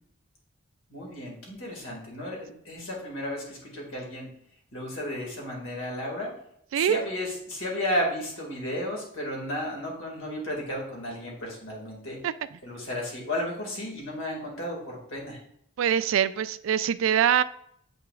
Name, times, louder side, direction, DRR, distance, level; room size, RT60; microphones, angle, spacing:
voice 1, 0.9-4.3 4.7-6.3 6.7-12.2 12.6-15.4, left 1 dB, 90° left, -1 dB, 2.2 m, -33 dB
voice 2, 15.8-17.4, right 9 dB, 80° right, 15 dB, 0.3 m, -23 dB
7.6 x 5.9 x 2.4 m, 0.71 s
head